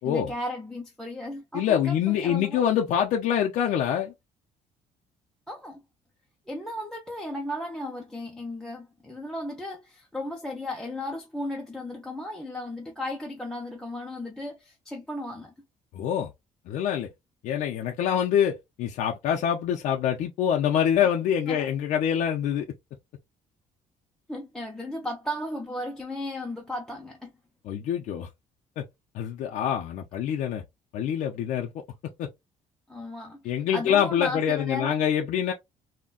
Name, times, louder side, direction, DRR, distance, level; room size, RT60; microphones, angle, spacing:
voice 1, 0.0-2.7 5.5-5.8 6.5-15.5 21.0-21.1 21.5-21.7 24.3-27.3 32.9-35.1, left 1 dB, 5° left, 0.5 m, -35 dB
voice 2, 1.5-4.1 15.9-16.3 16.7-17.1 17.4-22.7 27.6-28.3 28.8-28.9 29.1-30.6 30.9-31.7 32.2-32.3 33.4-35.5, left 9 dB, 70° left, 0.5 m, -25 dB
3.7 x 2.1 x 2.3 m
cardioid pair, 140°, 13 cm